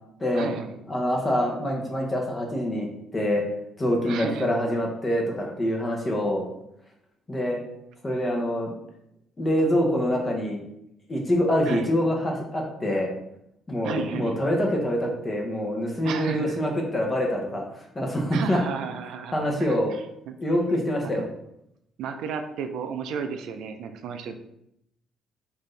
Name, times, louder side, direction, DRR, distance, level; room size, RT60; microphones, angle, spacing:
voice 1, 0.3-0.8 4.0-4.6 11.7-11.9 13.8-14.5 16.0-16.6 18.3-20.4 21.0-21.3 22.0-24.5, right 6 dB, 75° right, 7 dB, 0.3 m, -34 dB
voice 2, 0.9-2.9 3.1-3.4 3.8-6.4 7.3-7.6 8.0-8.7 9.4-10.6 11.1-13.1 13.7-17.6 17.9-18.6 19.3-19.9 20.4-21.3, equal, 20° left, 0 dB, 0.8 m, -25 dB
4.3 x 2.6 x 3.1 m, 0.80 s
cardioid pair, 120°, 0 cm